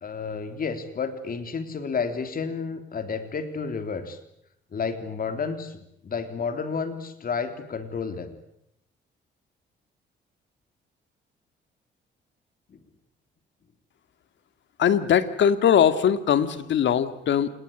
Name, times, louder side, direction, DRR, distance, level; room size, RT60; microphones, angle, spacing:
voice 1, 0.0-4.2 4.7-5.8 6.0-8.3 12.7-12.8, left 5 dB, 45° left, 9 dB, 3.5 m, -31 dB
voice 2, 14.8-17.5, left 8 dB, 70° left, 11 dB, 2.3 m, -21 dB
28.0 x 20.5 x 10.0 m, 0.78 s
cardioid pair, 90°, 20 cm